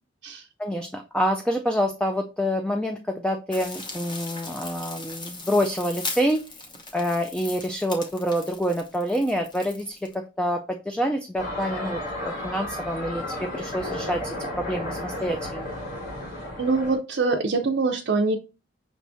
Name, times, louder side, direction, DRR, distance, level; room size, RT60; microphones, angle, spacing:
voice 1, 0.6-6.4 6.9-15.7, equal, 5° left, 4 dB, 0.3 m, -27 dB
sound 1, 3.5-10.1, left 3 dB, 25° left, 0.8 m, -38 dB
sound 2, 11.4-17.0, left 1 dB, 45° left, 2.0 m, -33 dB
voice 2, 16.6-18.4, right 3 dB, 60° right, 2 dB, 0.5 m, -24 dB
5.9 x 3.4 x 2.6 m, 0.30 s
head